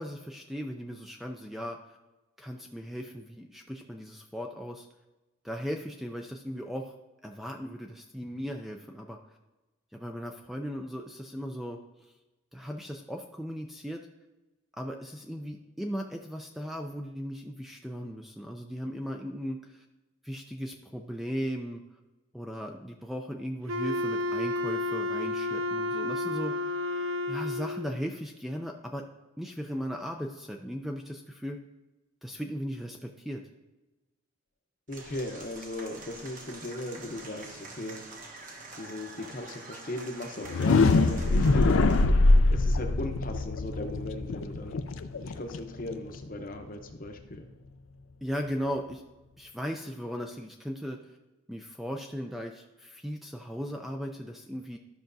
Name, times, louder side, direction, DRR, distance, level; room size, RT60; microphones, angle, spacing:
voice 1, 0.0-1.8 2.4-4.9 5.4-6.9 7.2-9.2 9.9-11.8 12.5-14.0 14.8-19.8 20.2-21.8 22.3-26.5 27.3-29.0 29.4-31.6 32.2-33.4 48.2-49.0 49.4-51.0 51.5-54.8, equal, ahead, 2 dB, 0.4 m, -37 dB
Wind instrument woodwind instrument, 23.7-28.0, left 2 dB, 80° right, 0.5 m, -31 dB
voice 2, 34.9-38.0 38.8-42.1 42.5-44.8 45.2-47.4, left 1 dB, 40° left, 6 dB, 0.7 m, -38 dB
Applause / Crowd, 34.9-42.0, right 3 dB, 40° right, 1.0 m, -46 dB
sound 1, 40.4-46.3, left 2 dB, 80° left, 0.5 m, -23 dB
12.5 x 5.8 x 2.6 m, 1.1 s
head